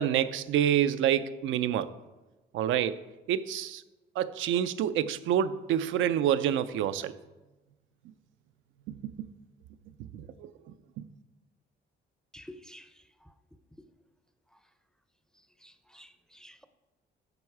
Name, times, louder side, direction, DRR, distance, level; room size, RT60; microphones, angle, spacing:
voice 1, 0.0-1.9 2.5-3.8 4.2-7.2 8.9-9.3 10.1-10.5 11.0-11.1, right 10 dB, 80° right, 12 dB, 0.4 m, -28 dB
voice 2, 12.3-12.9 13.2-13.3 15.6-16.6, left 1 dB, 5° left, 10 dB, 0.5 m, -50 dB
7.7 x 5.4 x 4.6 m, 1.1 s
cardioid pair, 90°, 20 cm